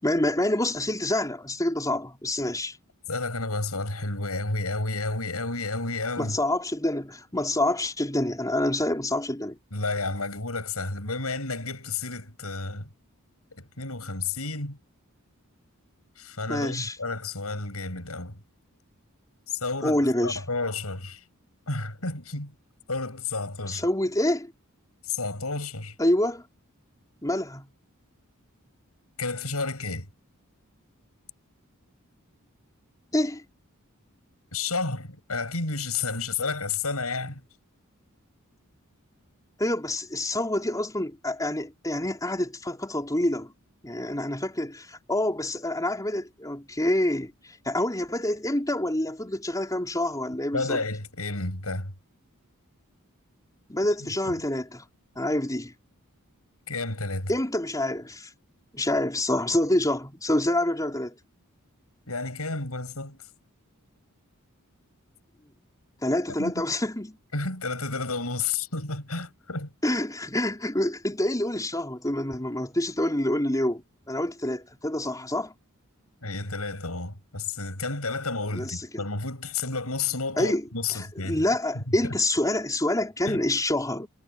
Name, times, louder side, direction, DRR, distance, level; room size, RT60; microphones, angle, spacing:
voice 1, 0.0-2.8 6.2-9.6 16.5-17.0 19.8-20.4 23.7-24.5 26.0-26.4 27.2-27.7 33.1-33.4 39.6-43.5 43.8-50.8 53.7-54.8 55.2-55.7 57.3-58.3 58.7-61.1 66.0-67.2 69.8-75.5 78.5-79.0 80.4-80.6 80.9-84.1, left 1 dB, 15° left, 4.6 m, -27 dB
voice 2, 3.1-6.4 9.7-12.9 13.5-14.8 16.2-18.4 19.5-21.2 21.7-22.5 22.9-23.8 25.0-26.0 29.2-30.1 34.5-37.4 50.5-51.9 54.2-54.4 56.7-57.3 62.1-63.2 66.4-66.7 67.3-69.7 76.2-81.4 81.7-82.1 83.3-83.4, left 3 dB, 90° left, 7.3 m, -31 dB
head